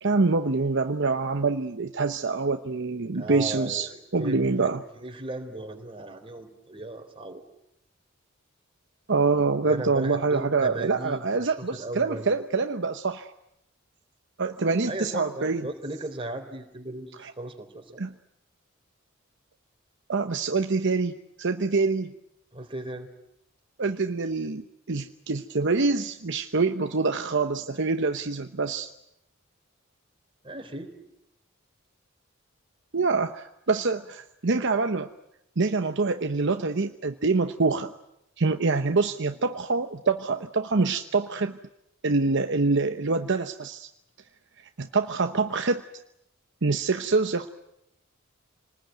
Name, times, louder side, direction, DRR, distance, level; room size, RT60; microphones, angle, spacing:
voice 1, 0.0-4.8 9.1-13.3 14.4-15.6 17.2-17.3 18.0-18.1 20.1-22.1 23.8-28.9 32.9-35.1 35.6-37.9 38.4-41.6 42.0-43.9 44.8-45.8 46.6-47.5, right 3 dB, 60° right, 7 dB, 0.9 m, -25 dB
voice 2, 3.1-4.7 4.9-7.4 9.6-12.3 14.8-17.8 22.5-23.1 30.4-30.9, right 2 dB, 25° right, 4 dB, 3.6 m, -37 dB
28.0 x 20.0 x 9.2 m, 0.83 s
head